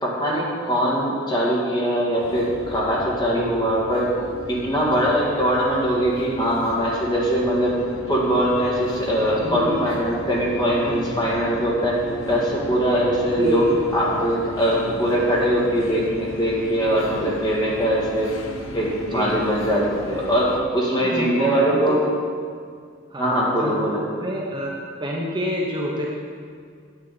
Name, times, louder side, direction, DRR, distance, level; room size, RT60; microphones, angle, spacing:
voice 1, 0.0-4.0 4.5-7.8 8.1-12.0 12.3-18.3 18.7-22.0 23.2-24.0, equal, 20° left, -5 dB, 2.0 m, -21 dB
sound 1, 2.2-20.6, left 1 dB, 85° left, 1.0 m, -36 dB
voice 2, 9.4-9.9 10.8-11.1 13.4-13.7 14.8-14.9 19.0-19.4 21.0-22.0 23.1-24.7 25.0-26.1, equal, 25° right, -2 dB, 0.8 m, -29 dB
9.4 x 8.3 x 4.2 m, 2.1 s
head